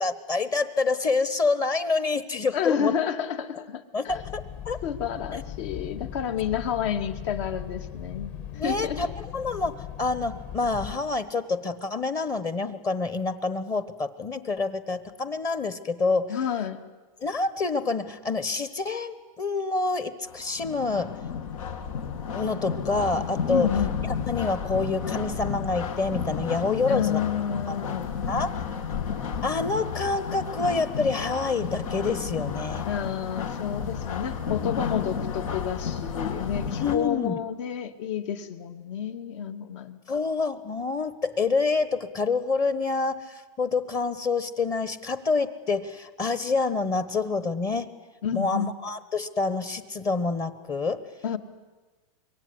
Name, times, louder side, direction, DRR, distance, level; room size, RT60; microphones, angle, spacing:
voice 1, 0.0-2.9 3.9-4.8 8.5-16.3 17.2-21.2 22.3-23.7 24.3-27.2 27.7-27.8 28.3-28.5 29.4-32.9 36.8-37.4 40.1-47.9 48.3-51.0, left 3 dB, 20° left, 13 dB, 1.1 m, -27 dB
voice 2, 2.5-4.1 4.8-9.1 16.3-16.8 23.5-24.0 26.9-28.2 32.9-40.0 48.2-48.7 51.2-51.4, left 8 dB, 60° left, 8 dB, 2.2 m, -30 dB
sound 1, 4.1-11.0, left 10 dB, 45° left, 2.9 m, -39 dB
sound 2, 20.3-37.0, left 6 dB, 85° left, 2.8 m, -32 dB
25.5 x 23.0 x 9.8 m, 1.2 s
supercardioid pair, 155°, 17 cm